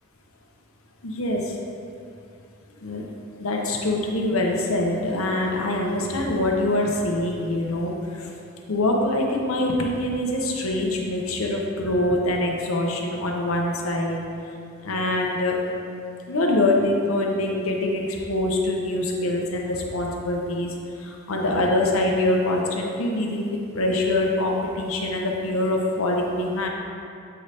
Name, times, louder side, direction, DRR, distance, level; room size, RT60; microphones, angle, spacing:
voice 1, 1.0-1.5 2.8-3.0 3.4-7.9 8.7-14.2 14.8-15.5 16.3-20.7 21.0-26.7, left 1 dB, 80° left, 0 dB, 0.8 m, -24 dB
7.6 x 3.3 x 4.1 m, 2.6 s
head